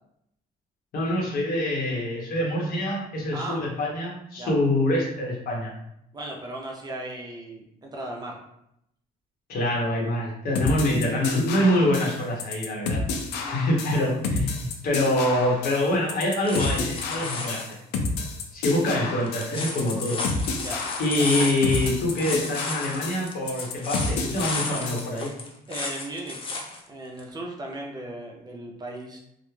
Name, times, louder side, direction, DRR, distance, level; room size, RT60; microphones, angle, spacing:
voice 1, 0.9-5.7 9.5-13.0 13.5-17.6 18.5-20.2 21.0-25.3, left 1 dB, 60° left, -2 dB, 0.9 m, -25 dB
voice 2, 6.1-8.4 13.4-13.6 20.6-20.9 25.7-29.2, right 1 dB, 25° right, -1 dB, 0.4 m, -37 dB
sound 1, 10.6-25.1, left 3 dB, 90° left, 0.4 m, -30 dB
sound 2, 16.4-17.7 19.3-26.8 27.2-27.3, left 3 dB, 30° left, 0.5 m, -33 dB
2.2 x 2.0 x 3.0 m, 0.79 s
cardioid pair, 110°, 17 cm